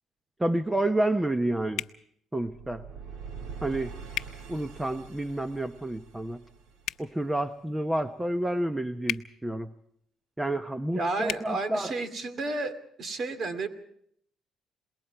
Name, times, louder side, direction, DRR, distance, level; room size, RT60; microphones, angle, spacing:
voice 1, 0.4-1.8 2.3-2.8 3.6-3.9 4.5-6.4 7.0-9.7 10.4-11.9, right 1 dB, 10° right, 9 dB, 0.9 m, -29 dB
sound 1, 1.7-2.0 4.1-4.3 6.8-7.0 9.0-9.2 11.2-11.4, left 13 dB, 80° left, 0.8 m, -33 dB
sound 2, 2.5-7.5, right 6 dB, 85° right, 2.4 m, -44 dB
voice 2, 10.9-12.7 13.0-13.7, right 2 dB, 50° right, 9 dB, 2.5 m, -31 dB
27.0 x 21.0 x 4.6 m, 0.68 s
cardioid pair, 110°, 0 cm